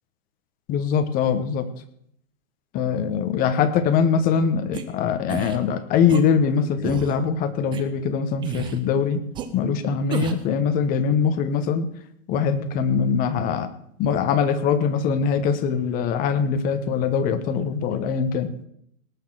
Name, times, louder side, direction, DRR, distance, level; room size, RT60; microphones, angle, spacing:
voice 1, 0.7-1.7 2.7-9.2 9.5-11.9 12.3-13.7 14.0-18.5, left 6 dB, 20° left, 11 dB, 1.0 m, -22 dB
sound 1, 4.7-4.8 5.3-5.6 6.1-6.2 6.8-7.2 7.7-7.8 8.4-8.8 9.3-9.5 10.1-10.5, right 7 dB, 10° right, 0.7 m, -31 dB
18.5 x 6.4 x 7.5 m, 0.70 s
hypercardioid pair, 145°, 42 cm